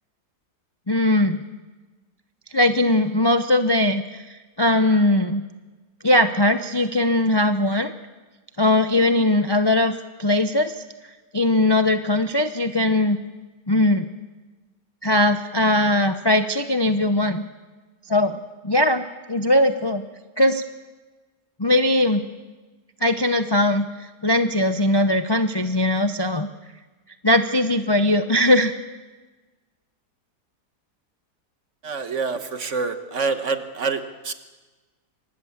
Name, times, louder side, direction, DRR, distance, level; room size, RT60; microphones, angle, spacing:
voice 1, 0.9-1.5 2.5-5.4 6.0-7.9 8.6-9.9 10.2-10.8 11.3-13.2 13.7-14.1 15.0-17.4 18.1-20.0 20.4-20.6 21.6-22.2 23.0-26.5 27.2-28.7, left 1 dB, 30° left, 9 dB, 0.5 m, -20 dB
voice 2, 31.8-34.3, right 4 dB, 50° right, 9 dB, 1.5 m, -26 dB
25.0 x 19.0 x 7.3 m, 1.3 s
omnidirectional pair, 1.8 m